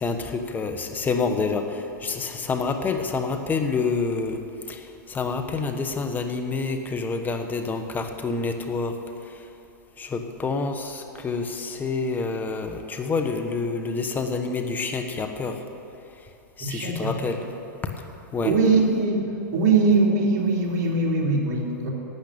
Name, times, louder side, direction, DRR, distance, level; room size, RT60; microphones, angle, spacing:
voice 1, 0.0-1.6 2.0-4.4 5.1-8.9 10.0-10.8 11.2-15.5 16.6-17.4 18.3-18.5, left 4 dB, 15° left, 6 dB, 1.2 m, -27 dB
voice 2, 16.6-17.4 18.4-19.2 19.5-21.9, right 3 dB, 40° right, -2 dB, 3.0 m, -21 dB
12.5 x 8.1 x 8.7 m, 2.8 s
hypercardioid pair, 125°, 11 cm